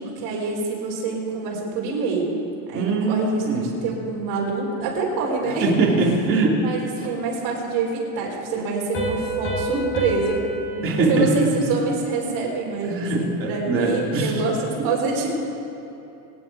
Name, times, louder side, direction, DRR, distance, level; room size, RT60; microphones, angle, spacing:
voice 1, 0.0-2.3 2.7-5.7 6.6-10.4 10.7-15.3, right 4 dB, 60° right, -2 dB, 4.6 m, -26 dB
voice 2, 2.7-3.7 5.6-6.5 10.8-11.5 12.9-14.3, right 3 dB, 30° right, -3 dB, 2.9 m, -22 dB
Piano, 8.9-12.4, right 1 dB, 30° left, 4.5 m, -30 dB
25.0 x 10.5 x 4.7 m, 2.9 s
cardioid pair, 150°, 42 cm